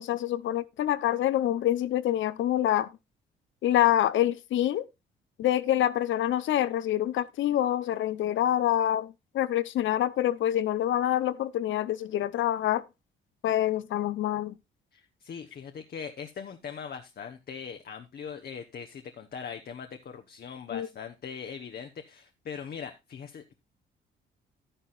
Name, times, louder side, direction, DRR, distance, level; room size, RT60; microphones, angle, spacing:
voice 1, 0.0-2.9 3.6-4.8 5.4-12.8 13.4-14.6 20.7-20.9, left 12 dB, 75° left, 0.8 m, -26 dB
voice 2, 14.9-23.5, left 6 dB, 50° left, 1.1 m, -41 dB
11.0 x 10.0 x 2.4 m
cardioid pair, 90°, 20 cm